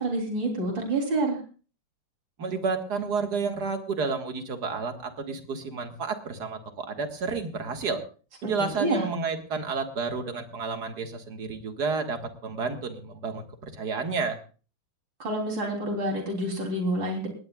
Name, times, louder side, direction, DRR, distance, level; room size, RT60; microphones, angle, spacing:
voice 1, 0.0-1.4 8.4-8.5 8.8-9.0 15.2-17.3, right 1 dB, 80° right, 1 dB, 4.3 m, -28 dB
voice 2, 2.4-8.0 8.4-14.4, right 4 dB, 60° right, 5 dB, 2.3 m, -31 dB
19.5 x 18.0 x 2.4 m, 0.38 s
omnidirectional pair, 2.0 m